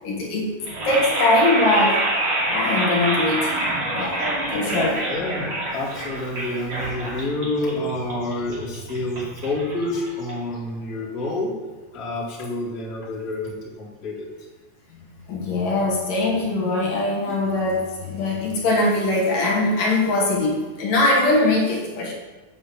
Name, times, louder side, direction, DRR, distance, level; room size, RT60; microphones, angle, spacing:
voice 1, 0.0-0.5 0.9-2.0 2.5-3.4 3.9-4.2 4.5-5.0 14.9-22.1, left 2 dB, 65° left, -2 dB, 3.1 m, -21 dB
sound 1, 0.6-10.7, right 1 dB, 35° right, 2.9 m, -27 dB
voice 2, 5.1-11.5 11.9-14.3 17.3-17.4, left 2 dB, 25° left, -5 dB, 2.4 m, -28 dB
8.3 x 7.5 x 7.6 m, 1.2 s
omnidirectional pair, 4.2 m